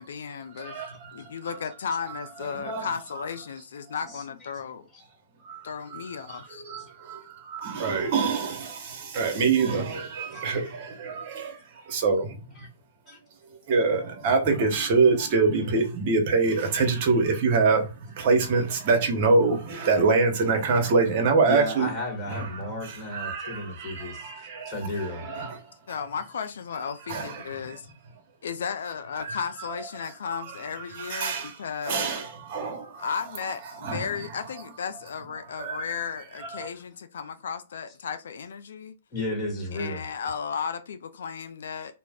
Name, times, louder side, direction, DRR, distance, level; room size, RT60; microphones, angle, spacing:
voice 1, 0.0-0.8 1.1-4.8 5.6-6.6 25.9-27.9 28.4-32.2 33.0-38.9 39.7-41.9, left 6 dB, 75° left, 0.4 m, -34 dB
voice 2, 0.6-1.3 2.1-2.2 2.5-2.9 3.2-3.3 5.4-12.5 13.7-21.9 22.3-25.6 27.1-27.8 29.2-29.4 30.5-31.6 31.8-33.1 33.8-34.1 35.5-36.0 36.4-36.7, right 4 dB, 45° right, 0.9 m, -25 dB
voice 3, 7.7-8.0 8.3-8.4 9.2-9.4 10.3-10.7 12.6-12.7 13.1-13.2 21.4-25.3 39.1-40.0, left 2 dB, 20° left, 1.1 m, -34 dB
2.4 x 2.1 x 3.4 m
hypercardioid pair, 135°, 0 cm